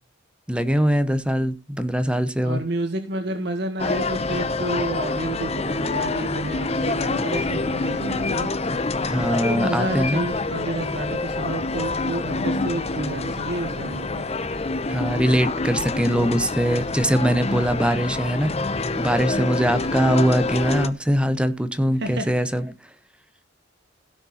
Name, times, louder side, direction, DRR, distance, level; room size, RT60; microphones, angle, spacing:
voice 1, 0.5-2.6 9.1-10.3 14.9-18.5 19.0-22.7, equal, 5° right, 0.9 m, -22 dB
voice 2, 2.4-8.5 9.4-14.2 20.0-20.3 22.0-22.5, right 1 dB, 60° right, 1.7 m, -30 dB
sound 1, 3.8-20.9, left 3 dB, 35° left, 0.8 m, -26 dB
16.0 x 6.7 x 4.3 m
head